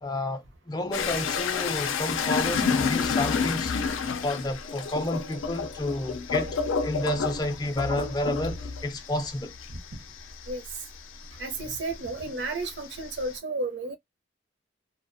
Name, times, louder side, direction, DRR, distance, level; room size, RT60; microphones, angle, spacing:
voice 1, 0.0-3.7 4.1-6.6 6.8-9.5, left 1 dB, 20° left, 0.4 m, -30 dB
sound 1, 0.9-11.9 12.2-13.4, left 5 dB, 80° left, 0.4 m, -29 dB
voice 2, 11.4-14.0, right 2 dB, 60° right, 0.7 m, -32 dB
2.3 x 2.1 x 2.5 m
head